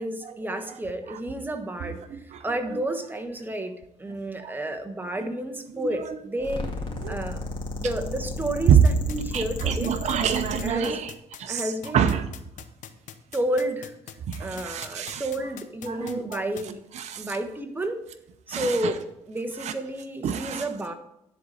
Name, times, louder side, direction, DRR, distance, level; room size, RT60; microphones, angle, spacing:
voice 1, 0.0-2.0 2.4-6.6 7.1-7.4 7.7-9.9 10.6-11.0 11.5-12.1 13.3-13.9 14.4-16.8 17.2-18.0 18.5-20.9, right 1 dB, 15° right, 6 dB, 1.2 m, -31 dB
voice 2, 1.8-2.5 2.7-2.8 4.4-4.6 5.9-6.2 7.0-7.2 8.7-8.8 9.3-11.1 11.4-12.2 14.3-15.3 15.9-16.6 16.9-17.4 18.5-18.9 19.6-19.7 20.2-20.7, right 8 dB, 60° right, 8 dB, 0.7 m, -27 dB
sound 1, 6.4-10.7, left 2 dB, 40° left, 2.0 m, -33 dB
sound 2, 8.8-16.6, left 10 dB, 70° left, 0.8 m, -41 dB
10.5 x 4.1 x 6.5 m, 0.82 s
cardioid pair, 85°, 13 cm